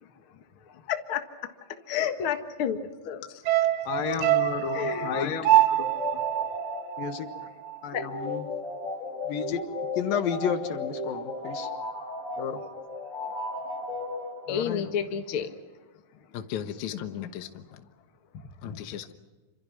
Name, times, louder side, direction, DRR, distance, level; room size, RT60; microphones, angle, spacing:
voice 1, 0.7-1.5 1.9-3.4 3.9-6.2 7.9-8.1 14.5-15.5 16.9-17.0 18.3-18.5, left 8 dB, 50° left, 6 dB, 2.0 m, -32 dB
sound 1, 3.5-7.9 8.1-8.2, right 14 dB, 80° right, 2.6 m, -25 dB
voice 2, 3.8-5.3 7.0-7.3 7.8-8.5 9.3-9.6 10.0-11.7 12.4-12.6 14.5-14.9, left 7 dB, 80° left, 8 dB, 3.2 m, -31 dB
sound 2, 4.1-14.8, left 3 dB, 20° left, 4.6 m, -36 dB
voice 3, 16.3-17.8 18.6-19.1, left 9 dB, 65° left, 7 dB, 2.4 m, -36 dB
27.5 x 26.5 x 6.0 m, 1.3 s
omnidirectional pair, 4.0 m